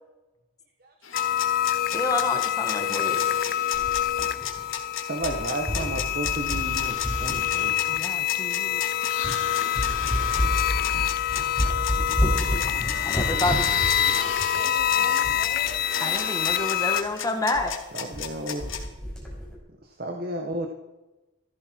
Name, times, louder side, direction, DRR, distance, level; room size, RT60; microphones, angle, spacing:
sound 1, 1.0-18.8, left 8 dB, 85° left, 2.2 m, -34 dB
sound 2, 1.1-17.0, left 11 dB, 45° left, 0.4 m, -26 dB
voice 1, 1.9-3.2 7.9-8.8 13.0-13.7 16.0-17.7, left 2 dB, 15° left, 5 dB, 1.6 m, -29 dB
sound 3, 3.7-4.9 5.2-8.2 8.7-8.8 9.2-9.4 9.7-15.8 16.1-16.2 16.4-16.5 16.9-17.1 17.5-17.7 17.9-18.3 18.6-19.5, equal, ahead, 5.6 m, -30 dB
voice 2, 5.0-7.8 17.9-18.7 19.8-20.7, right 1 dB, 50° right, 3 dB, 1.6 m, -32 dB
voice 3, 5.8-6.3 12.7-13.5 14.0-16.8, equal, 75° right, 0 dB, 5.4 m, -42 dB
15.0 x 14.5 x 4.7 m, 1.0 s
head